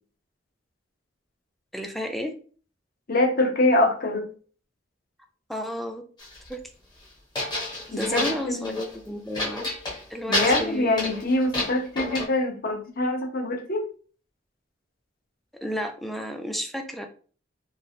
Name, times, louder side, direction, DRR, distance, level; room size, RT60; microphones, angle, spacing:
voice 1, 1.7-2.3 5.5-6.0 6.5-6.6 7.9-9.7 10.1-11.0 15.6-17.1, equal, ahead, 4 dB, 0.3 m, -32 dB
voice 2, 3.1-4.3 7.9-8.8 10.3-13.8, left 1 dB, 50° left, 4 dB, 0.6 m, -24 dB
sound 1, 6.2-6.5 7.4-8.9 9.3-10.0 10.3-12.3, left 2 dB, 25° left, 0.8 m, -29 dB
3.1 x 2.4 x 2.6 m, 0.42 s
head